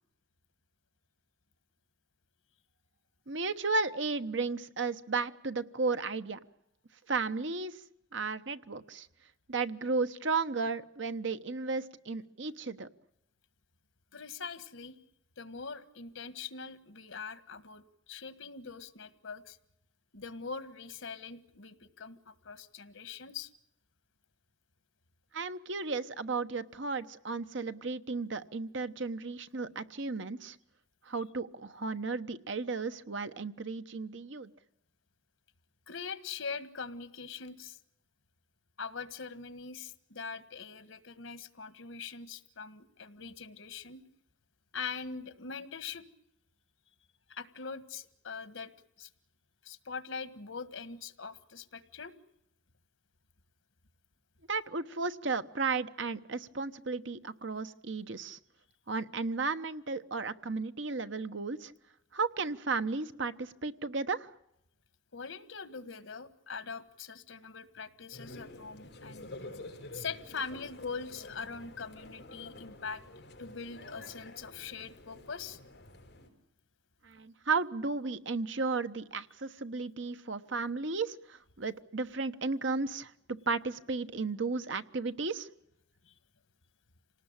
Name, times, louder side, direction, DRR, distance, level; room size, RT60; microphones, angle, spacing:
voice 1, 3.3-6.4 7.1-7.8 8.1-9.1 9.5-12.9 25.3-30.6 31.0-34.5 54.5-58.4 58.9-61.7 62.1-64.3 77.0-85.5, right 4 dB, 70° right, 10 dB, 1.2 m, -34 dB
voice 2, 14.1-15.0 15.4-19.6 20.1-23.5 35.9-37.8 38.8-44.0 44.7-46.1 47.3-48.7 49.0-49.1 49.6-52.1 65.1-69.3 69.9-73.0 73.4-75.6 86.0-86.1, left 5 dB, 90° left, 13 dB, 1.6 m, -42 dB
sound 1, 68.1-76.3, left 2 dB, 55° left, 5.1 m, -49 dB
27.0 x 19.0 x 8.9 m, 0.80 s
head